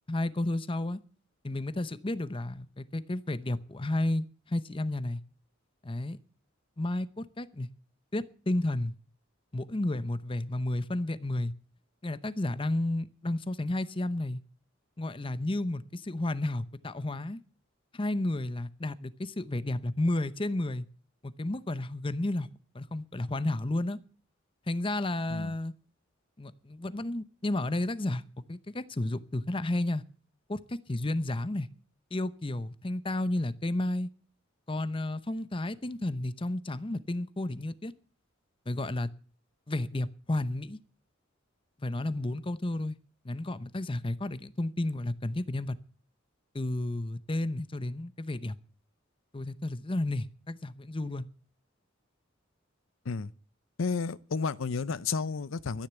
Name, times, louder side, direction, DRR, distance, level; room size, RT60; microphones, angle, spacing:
voice 1, 0.1-1.0 1.4-5.2 5.8-6.2 6.8-7.7 8.1-9.0 9.5-11.5 12.0-14.4 15.0-17.4 17.9-20.9 21.2-22.5 22.7-24.0 24.7-25.7 26.4-30.0 30.5-31.7 32.1-34.1 34.7-37.9 38.7-39.1 39.7-40.8 41.8-43.0 43.2-45.8 46.5-48.6 49.3-51.3, left 1 dB, 25° left, 0.8 m, -32 dB
voice 2, 53.8-55.9, left 5 dB, 80° left, 0.6 m, -32 dB
13.0 x 10.5 x 8.1 m
head